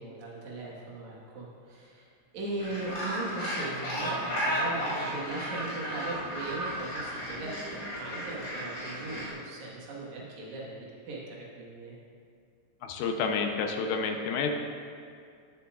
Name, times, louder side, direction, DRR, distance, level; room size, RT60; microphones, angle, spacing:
voice 1, 0.0-2.1 2.3-12.0, right 2 dB, 60° right, -5 dB, 2.7 m, -39 dB
Gull seagull, 2.6-9.3, equal, 65° left, 3.4 m, -34 dB
voice 2, 12.8-14.5, left 5 dB, 90° left, 3 dB, 2.6 m, -29 dB
17.0 x 6.9 x 2.5 m, 2.3 s
omnidirectional pair, 4.1 m